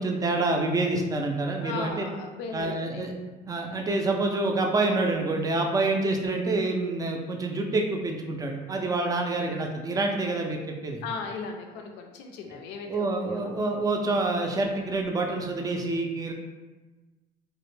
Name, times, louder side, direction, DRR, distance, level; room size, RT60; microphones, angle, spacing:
voice 1, 0.0-2.1 2.5-3.1 3.5-11.0 12.9-16.3, right 2 dB, 20° right, 2 dB, 0.4 m, -27 dB
voice 2, 1.6-3.0 8.8-9.0 11.0-13.5, left 5 dB, 90° left, 3 dB, 0.4 m, -37 dB
2.1 x 2.0 x 3.0 m, 1.2 s
cardioid pair, 110°, 17 cm